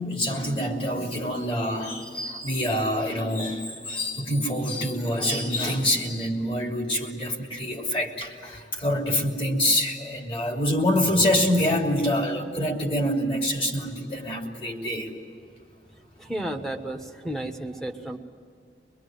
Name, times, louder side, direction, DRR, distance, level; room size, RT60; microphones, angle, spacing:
voice 1, 0.0-15.1, equal, 30° left, 1 dB, 3.1 m, -26 dB
voice 2, 16.2-18.2, right 1 dB, 5° left, 1 dB, 1.4 m, -32 dB
24.5 x 22.0 x 9.2 m, 2.3 s
head